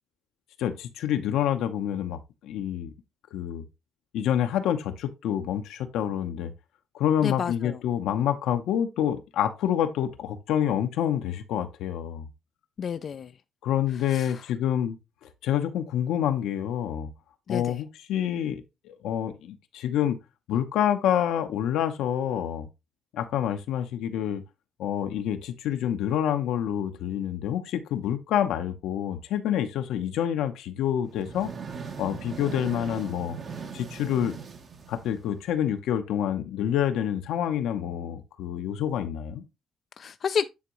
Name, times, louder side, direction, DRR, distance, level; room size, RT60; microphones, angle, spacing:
voice 1, 0.6-2.9 3.3-3.6 4.1-6.5 6.9-12.3 13.6-15.0 15.4-17.1 17.5-20.2 20.5-22.7 23.1-24.4 24.8-31.5 32.0-33.4 33.7-34.4 34.9-39.4, left 10 dB, 85° left, 0.8 m, -27 dB
voice 2, 7.2-7.8 12.8-13.3 13.9-14.5 17.5-17.8 40.0-40.5, left 7 dB, 55° left, 0.3 m, -31 dB
sound 1, 31.1-35.6, right 5 dB, 50° right, 1.1 m, -39 dB
9.5 x 3.6 x 3.1 m
cardioid pair, 90°, 0 cm